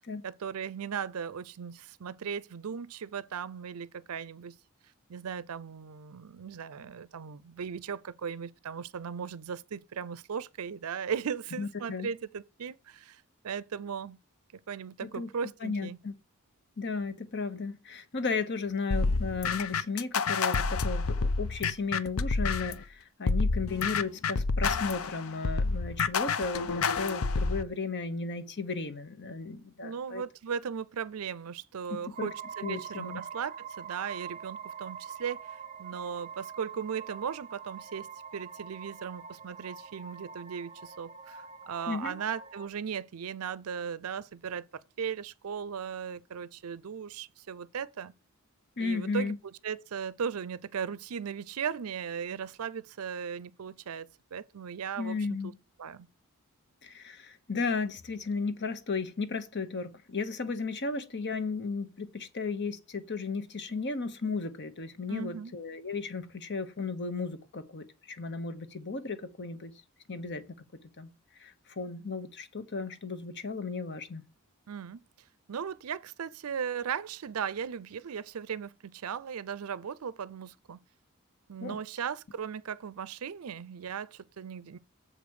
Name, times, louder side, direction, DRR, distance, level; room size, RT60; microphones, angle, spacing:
voice 1, 0.2-4.6 5.1-14.2 14.5-16.0 29.8-44.6 45.0-48.1 48.8-55.2 55.4-55.5 55.8-56.1 65.1-65.5 74.7-75.0 75.5-80.8 81.5-84.8, right 7 dB, 85° right, 0.5 m, -37 dB
voice 2, 11.6-12.1 15.0-15.3 15.6-16.1 16.8-30.2 31.9-32.3 32.6-33.2 41.9-42.2 48.8-49.4 55.0-55.5 56.8-69.7 70.1-70.4 71.0-71.1 71.4-74.2 81.6-81.8, left 4 dB, 55° left, 1.2 m, -35 dB
sound 1, 18.9-22.8 23.3-27.6, left 4 dB, 70° left, 0.6 m, -29 dB
sound 2, 32.1-42.7, right 7 dB, 30° right, 0.7 m, -44 dB
7.4 x 5.1 x 6.4 m
head